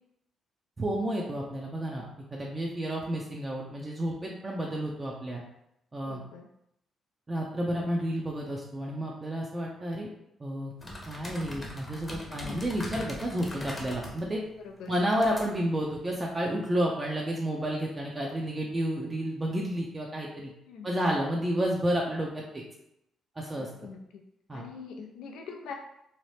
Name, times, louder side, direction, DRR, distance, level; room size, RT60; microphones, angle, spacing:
voice 1, 0.8-5.4 5.9-6.2 7.3-10.1 10.4-10.7 11.1-14.4 14.9-20.5 20.8-22.6 23.4-23.7 24.5-24.6, equal, 25° right, -2 dB, 0.4 m, -31 dB
voice 2, 6.0-6.5 12.3-12.8 14.6-14.9 20.7-21.1 23.6-24.2 24.5-25.7, left 5 dB, 85° left, 2 dB, 0.3 m, -44 dB
sound 1, 10.8-16.4, left 1 dB, 20° left, 0.7 m, -42 dB
2.8 x 2.0 x 3.1 m, 0.79 s
cardioid pair, 90°, 0 cm